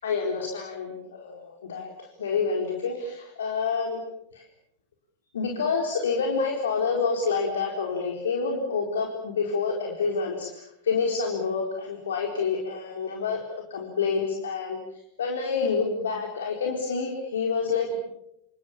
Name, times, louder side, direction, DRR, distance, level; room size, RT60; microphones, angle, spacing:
voice 1, 0.0-4.0 4.3-4.4 5.3-14.8 15.2-18.0, left 5 dB, 65° left, 2 dB, 4.3 m, -28 dB
28.5 x 28.0 x 7.3 m, 0.79 s
figure-of-eight pair, 90°, 0 cm